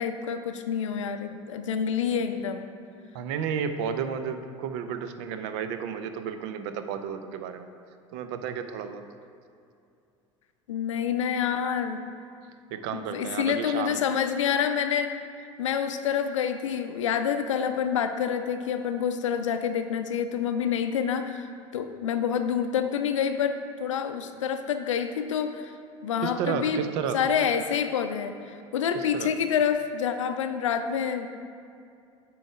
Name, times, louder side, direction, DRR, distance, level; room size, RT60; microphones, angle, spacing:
voice 1, 0.0-2.7 10.7-12.0 12.9-15.2 15.6-21.5 21.7-25.7 26.0-26.8 27.1-31.3, left 7 dB, 70° left, 8 dB, 0.5 m, -27 dB
voice 2, 3.1-7.7 8.1-9.1 12.7-14.0 26.2-27.2 28.9-29.3, right 7 dB, 55° right, 9 dB, 0.5 m, -32 dB
8.9 x 4.5 x 3.6 m, 2.5 s
figure-of-eight pair, 70°, 16 cm